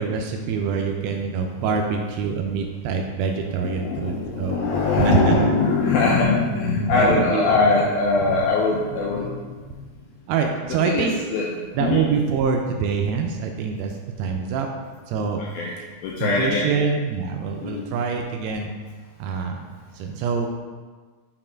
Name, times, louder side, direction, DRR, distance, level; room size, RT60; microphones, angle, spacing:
voice 1, 0.0-4.7 5.0-5.4 6.9-7.5 10.3-11.1 11.8-14.7 15.1-15.4 16.2-18.7 19.2-19.6 19.9-20.5, right 6 dB, 80° right, 3 dB, 2.4 m, -25 dB
voice 2, 3.6-9.9 10.8-12.1 15.4-15.7 16.0-16.7 17.6-17.9, left 3 dB, 80° left, -3 dB, 2.1 m, -22 dB
6.4 x 4.3 x 4.4 m, 1.4 s
omnidirectional pair, 5.0 m